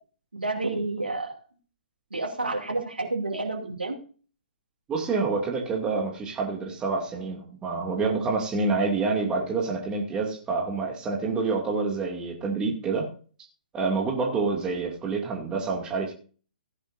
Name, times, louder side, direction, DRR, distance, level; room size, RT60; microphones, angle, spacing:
voice 1, 0.3-1.3 2.1-4.0, right 2 dB, 85° right, 1 dB, 2.6 m, -29 dB
voice 2, 4.9-13.1 13.7-16.1, right 4 dB, 15° right, 0 dB, 2.4 m, -27 dB
16.0 x 10.5 x 2.6 m, 0.40 s
figure-of-eight pair, 130°, 5 cm